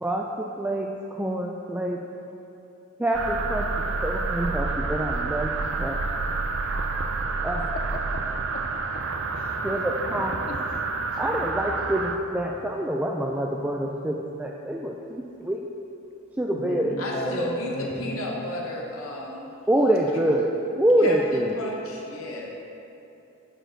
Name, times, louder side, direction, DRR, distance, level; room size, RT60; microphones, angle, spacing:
voice 1, 0.0-2.0 3.0-3.7 4.0-5.5 5.8-6.0 7.4-7.7 9.6-10.4 11.2-15.7 16.4-17.6 19.7-20.5 20.8-21.6, right 1 dB, 10° right, -1 dB, 0.3 m, -26 dB
sound 1, 3.1-12.2, right 3 dB, 60° right, 0.5 m, -29 dB
voice 2, 10.5-11.2 13.5-13.6 16.5-18.5, left 2 dB, 45° left, 4 dB, 0.6 m, -36 dB
voice 3, 17.0-19.5 21.0-22.5, left 1 dB, 70° left, -1 dB, 0.9 m, -33 dB
12.5 x 4.5 x 4.5 m, 2.8 s
head